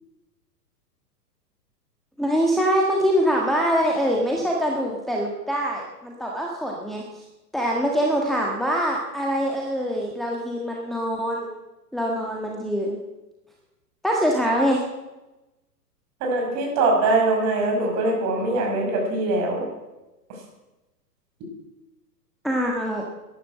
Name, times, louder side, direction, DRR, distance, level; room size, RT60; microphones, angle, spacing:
voice 1, 2.2-7.0 7.5-11.5 11.9-13.0 14.0-14.8 22.4-23.0, equal, ahead, -2 dB, 1.5 m, -24 dB
voice 2, 16.2-19.7, right 2 dB, 35° right, 1 dB, 5.4 m, -22 dB
13.0 x 11.0 x 7.7 m, 1.0 s
figure-of-eight pair, 110°, 49 cm